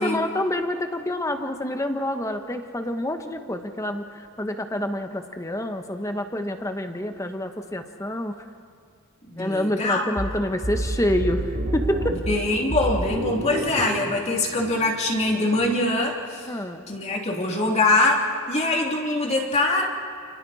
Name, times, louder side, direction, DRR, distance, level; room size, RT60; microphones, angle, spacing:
voice 1, 0.0-8.3 9.4-12.2 16.5-16.8, left 1 dB, 15° left, 6 dB, 1.2 m, -27 dB
voice 2, 9.3-10.0 12.1-16.5 16.9-19.9, left 2 dB, 30° left, -1 dB, 2.9 m, -23 dB
sound 1, 10.2-15.8, right 1 dB, 50° right, 2.2 m, -30 dB
29.0 x 29.0 x 4.3 m, 2.3 s
head